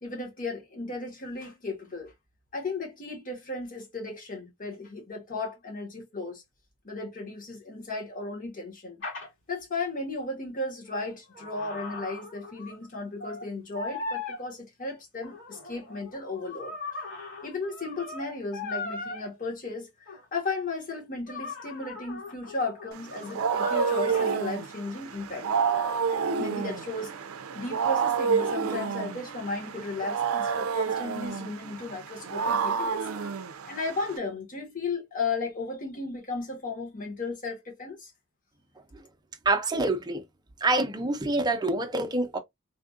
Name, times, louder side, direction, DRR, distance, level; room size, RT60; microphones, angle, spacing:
voice 1, 0.0-2.1 2.5-6.4 6.8-9.0 9.5-16.7 17.4-25.5 26.4-27.1 27.5-33.0 33.7-38.1, left 3 dB, 40° left, 1.3 m, -35 dB
sound 1, 9.0-9.3 10.8-12.9 13.2-13.5 13.7-14.4 15.2-19.3 20.1-20.2 21.3-24.4 25.4-26.3, left 3 dB, 65° left, 2.3 m, -39 dB
Wild animals, 23.0-34.2, right 6 dB, 85° right, 0.4 m, -29 dB
voice 2, 39.4-40.2 40.6-42.4, right 2 dB, 20° right, 0.6 m, -26 dB
3.5 x 2.4 x 2.4 m
head